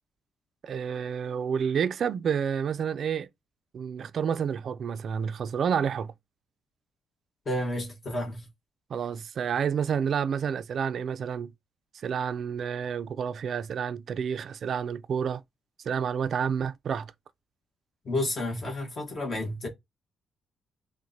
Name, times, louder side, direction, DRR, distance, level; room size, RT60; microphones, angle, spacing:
voice 1, 0.6-3.3 3.7-6.1 8.9-11.5 12.0-15.4 15.9-17.1, right 7 dB, 55° right, 0.4 m, -29 dB
voice 2, 7.4-8.5 18.0-19.7, left 1 dB, 40° left, 1.3 m, -31 dB
5.7 x 2.1 x 2.7 m
cardioid pair, 90°, 0 cm